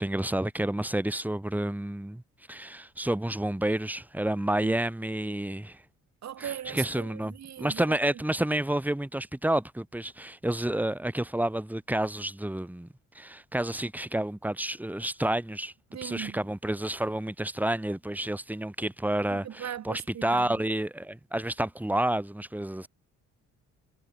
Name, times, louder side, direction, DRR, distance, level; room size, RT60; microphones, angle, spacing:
voice 1, 0.0-2.2 2.5-5.8 6.4-12.9 13.2-15.7 16.0-22.9, right 1 dB, 5° right, 3.4 m, -30 dB
voice 2, 6.2-8.0 15.9-16.4 19.3-20.5, right 10 dB, 65° right, 3.4 m, -39 dB
cardioid pair, 90°, 30 cm